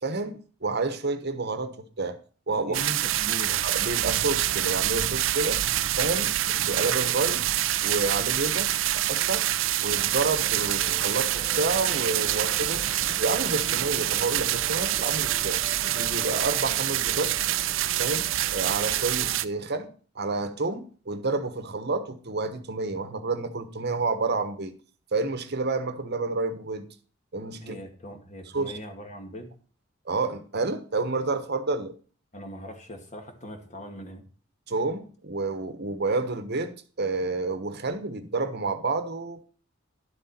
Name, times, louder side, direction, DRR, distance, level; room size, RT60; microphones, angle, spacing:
voice 1, 0.0-2.2 2.5-2.8 3.5-5.6 6.0-7.4 7.8-9.5 9.8-12.8 13.2-15.6 15.9-17.3 18.0-24.7 25.1-26.9 27.3-27.8 28.5-28.8 30.0-31.9 34.7-39.4, right 3 dB, 55° right, 1.2 m, -29 dB
voice 2, 2.5-3.6 27.6-29.5 32.3-34.2, equal, 40° left, 2.2 m, -40 dB
sound 1, 2.7-19.4, right 13 dB, 80° right, 0.5 m, -26 dB
sound 2, 9.9-19.4, right 2 dB, 30° right, 0.8 m, -42 dB
11.5 x 7.9 x 4.4 m
head